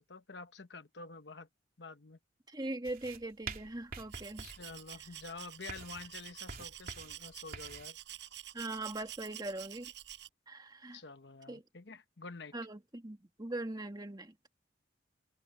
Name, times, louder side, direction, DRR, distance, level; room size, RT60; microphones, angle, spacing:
voice 1, 0.0-1.5 1.8-2.2 4.4-8.0 10.9-12.5, left 4 dB, 65° left, 1.1 m, -48 dB
voice 2, 2.5-4.5 8.5-9.9 10.5-11.0 11.5-11.6 12.5-14.3, right 2 dB, 20° right, 1.8 m, -41 dB
sound 1, 2.8-7.9, right 4 dB, 50° right, 3.3 m, -47 dB
Domestic sounds home sounds, 4.1-10.3, right 12 dB, 70° right, 7.5 m, -48 dB
head